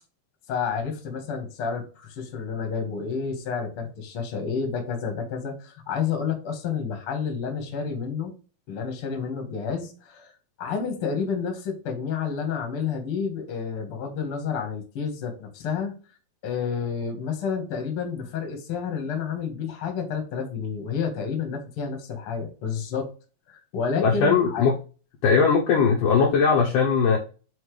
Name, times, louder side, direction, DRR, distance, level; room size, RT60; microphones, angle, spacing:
voice 1, 0.5-8.3 8.7-10.3 10.6-15.9 16.4-23.1 23.5-24.7, left 6 dB, 45° left, 3 dB, 2.1 m, -30 dB
voice 2, 24.0-24.7 25.2-27.2, left 5 dB, 65° left, -2 dB, 2.4 m, -19 dB
7.1 x 4.4 x 3.3 m, 0.35 s
omnidirectional pair, 4.4 m